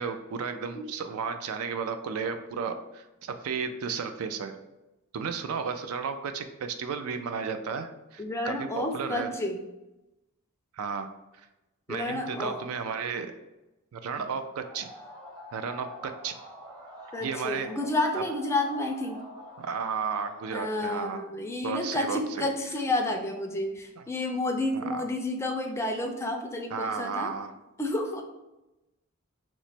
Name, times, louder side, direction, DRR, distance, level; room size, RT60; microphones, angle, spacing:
voice 1, 0.0-4.6 5.1-9.3 10.8-11.1 11.4-11.5 11.9-13.3 13.9-14.9 15.5-16.3 17.2-17.7 18.1-18.2 19.6-21.2 21.6-22.5 24.7-25.0 26.7-27.5, right 6 dB, 85° right, 8 dB, 0.4 m, -33 dB
voice 2, 8.2-9.6 11.9-12.7 17.1-19.2 20.5-27.3 27.8-28.2, left 2 dB, 15° left, 3 dB, 0.3 m, -30 dB
sound 1, 14.6-20.8, equal, 20° right, 0.7 m, -46 dB
3.0 x 2.1 x 4.1 m, 0.99 s
head